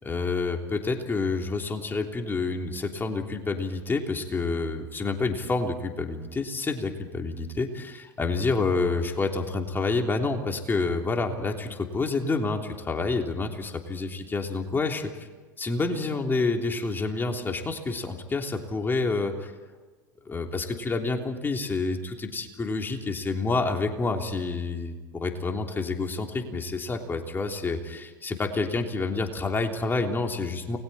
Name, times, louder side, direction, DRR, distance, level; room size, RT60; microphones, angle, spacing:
voice 1, 0.0-15.3 15.6-19.5 20.2-30.8, left 3 dB, 20° left, 3 dB, 3.4 m, -28 dB
29.5 x 21.5 x 4.4 m, 1.3 s
hypercardioid pair, 85°, 10 cm